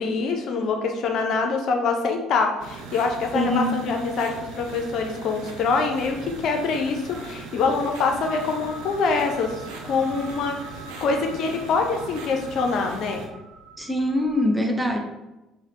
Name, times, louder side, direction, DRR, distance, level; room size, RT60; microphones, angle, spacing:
voice 1, 0.0-10.7 11.0-13.2, left 4 dB, 55° left, 4 dB, 0.4 m, -25 dB
sound 1, 2.6-13.2, right 3 dB, 65° right, 0.5 m, -39 dB
voice 2, 3.3-3.8 13.8-15.0, left 1 dB, 5° right, 3 dB, 0.6 m, -23 dB
sound 2, 6.0-14.5, right 1 dB, 15° left, 0.9 m, -45 dB
4.0 x 2.0 x 3.8 m, 1.0 s
figure-of-eight pair, 50°, 0 cm